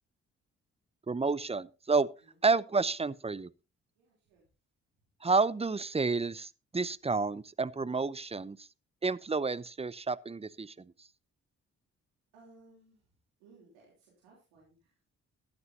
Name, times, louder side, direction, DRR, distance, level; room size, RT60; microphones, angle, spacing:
voice 1, 1.1-2.1 2.4-3.5 5.2-8.7 9.0-10.9, right 4 dB, 15° right, 0.7 m, -30 dB
voice 2, 4.0-4.5 12.3-13.1 13.4-15.1, right 3 dB, 85° right, 3.5 m, -61 dB
15.0 x 12.0 x 2.8 m
hypercardioid pair, 40°, 35 cm